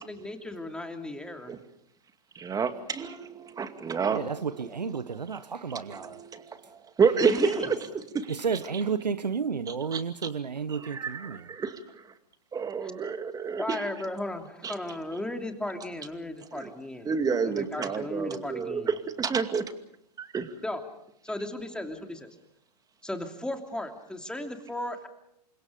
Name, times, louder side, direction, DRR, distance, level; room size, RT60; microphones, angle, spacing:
voice 1, 0.0-1.5 7.2-7.7 12.8-12.9 13.6-17.1 17.4-18.9 20.6-20.8 21.2-22.4 23.0-25.1, left 1 dB, 5° left, 3.1 m, -35 dB
voice 2, 2.4-4.3 5.9-6.4 7.0-7.3 8.1-8.3 9.9-10.0 10.8-11.8 12.5-13.8 14.6-14.7 16.5-16.7 17.1-19.7 20.2-20.5, right 6 dB, 15° right, 2.3 m, -29 dB
voice 3, 4.1-6.2 8.3-11.5, right 6 dB, 90° right, 1.0 m, -32 dB
29.5 x 25.5 x 5.3 m
hypercardioid pair, 110°, 21 cm